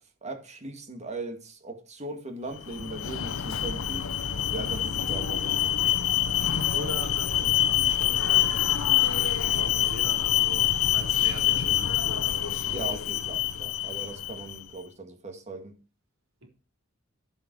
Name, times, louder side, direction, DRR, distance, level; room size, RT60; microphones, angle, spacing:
voice 1, 0.2-4.1 4.5-5.6 12.7-15.7, right 2 dB, 35° right, 2.0 m, -39 dB
Alarm, 2.6-14.6, left 11 dB, 80° left, 0.7 m, -26 dB
voice 2, 6.7-8.6 8.9-12.8 16.4-16.5, right 1 dB, 75° right, 3.8 m, -41 dB
14.5 x 5.6 x 4.7 m
head